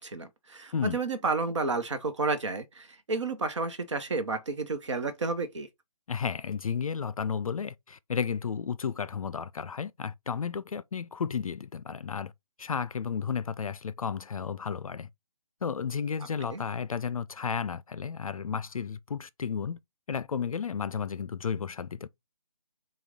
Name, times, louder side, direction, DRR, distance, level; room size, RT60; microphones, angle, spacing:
voice 1, 0.0-5.7 16.5-16.6, right 3 dB, 50° right, 0.8 m, -31 dB
voice 2, 6.1-12.3 12.6-15.1 15.6-19.8 20.1-22.1, left 6 dB, 65° left, 0.4 m, -33 dB
5.8 x 2.3 x 3.5 m
figure-of-eight pair, 150°, 19 cm